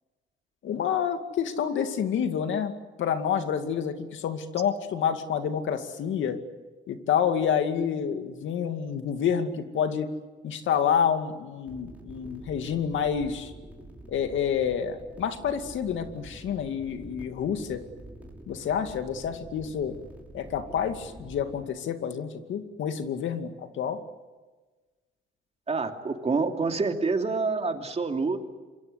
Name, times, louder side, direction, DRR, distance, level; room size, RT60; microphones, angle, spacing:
voice 1, 0.6-2.7 3.0-6.4 6.9-10.1 10.4-13.5 14.1-17.8 18.5-19.9 20.3-24.0, left 8 dB, 75° left, 7 dB, 2.4 m, -28 dB
sound 1, 11.6-21.6, right 1 dB, 5° right, 6.6 m, -47 dB
voice 2, 25.7-28.4, right 4 dB, 30° right, 4 dB, 3.0 m, -27 dB
27.0 x 23.5 x 8.2 m, 1.3 s
cardioid pair, 90°, 20 cm